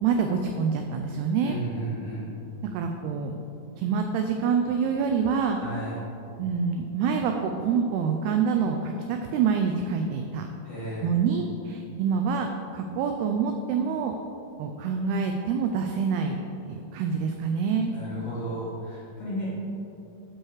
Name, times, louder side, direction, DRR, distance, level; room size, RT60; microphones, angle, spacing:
voice 1, 0.0-1.6 2.6-3.3 3.8-5.6 6.4-10.5 11.0-12.5 12.7-14.1 14.6-16.4 16.7-17.9, right 6 dB, 85° right, 4 dB, 2.3 m, -26 dB
voice 2, 1.4-2.3 5.6-6.0 10.6-11.2 17.9-19.5, right 1 dB, 60° left, -10 dB, 1.8 m, -34 dB
12.0 x 4.7 x 4.7 m, 2.8 s
omnidirectional pair, 5.0 m